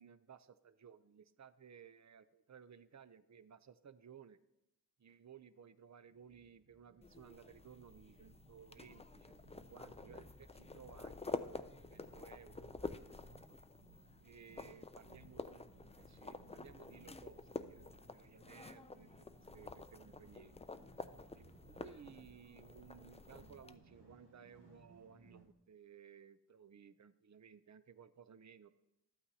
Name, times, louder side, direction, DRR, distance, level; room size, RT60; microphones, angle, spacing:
voice 1, 0.0-4.4 5.0-11.4 11.9-13.6 14.2-15.7 16.0-20.6 21.3-28.7, right 7 dB, 45° right, 13 dB, 0.5 m, -59 dB
sound 1, 6.1-25.5, right 1 dB, 85° right, 1.6 m, -64 dB
sound 2, 7.0-23.8, left 3 dB, 15° left, 0.3 m, -49 dB
13.0 x 8.7 x 2.7 m, 0.92 s
wide cardioid pair, 60°, 40 cm